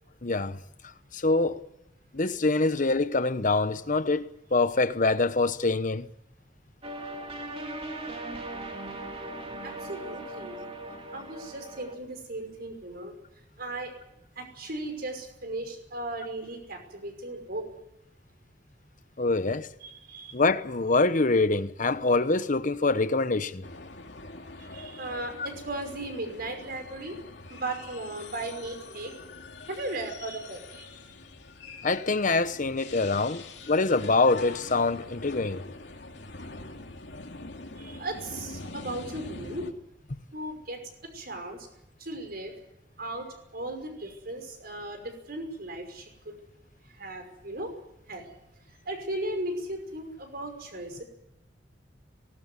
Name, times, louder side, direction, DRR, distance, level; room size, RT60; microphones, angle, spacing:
voice 1, 0.2-0.6 1.1-1.6 2.1-4.2 4.5-6.1 19.2-19.7 20.3-23.6 25.4-25.5 31.8-35.6, left 3 dB, 45° left, 1.1 m, -25 dB
sound 1, 6.8-12.0, right 1 dB, 35° right, 2.8 m, -39 dB
voice 2, 9.6-10.6 11.1-13.2 13.6-13.9 14.4-17.7 19.8-20.4 24.7-27.2 27.5-29.1 29.7-30.9 37.8-39.6 40.3-40.8 41.1-41.6 42.0-42.5 43.0-43.3 43.5-46.1 47.0-47.7 48.1-48.2 48.9-51.0, right 2 dB, 55° right, 5.7 m, -36 dB
sound 2, 23.6-39.7, left 3 dB, 70° left, 2.6 m, -44 dB
19.5 x 18.5 x 9.7 m
head